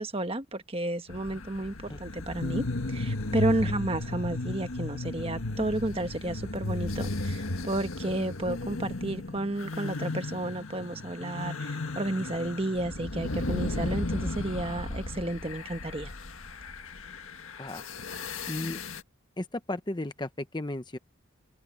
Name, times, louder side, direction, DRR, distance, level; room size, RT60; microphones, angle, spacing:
voice 1, 0.0-16.1, right 1 dB, 25° right, 1.3 m, -32 dB
sound 1, 1.1-19.0, left 2 dB, 80° left, 1.6 m, -35 dB
voice 2, 18.5-18.8 19.4-21.0, left 1 dB, 20° left, 0.9 m, -35 dB
head